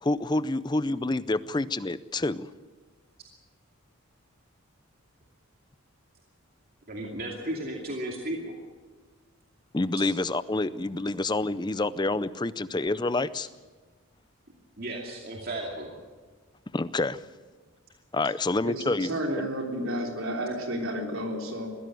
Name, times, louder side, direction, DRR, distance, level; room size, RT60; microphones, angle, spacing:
voice 1, 0.0-2.5 9.7-13.5 16.7-17.2 18.1-19.5, left 2 dB, 20° left, 16 dB, 0.5 m, -28 dB
voice 2, 6.9-8.6 14.8-16.0, right 1 dB, 45° right, -1 dB, 2.6 m, -34 dB
voice 3, 18.6-21.7, equal, 75° right, 2 dB, 3.5 m, -31 dB
21.5 x 16.0 x 7.8 m, 1.4 s
head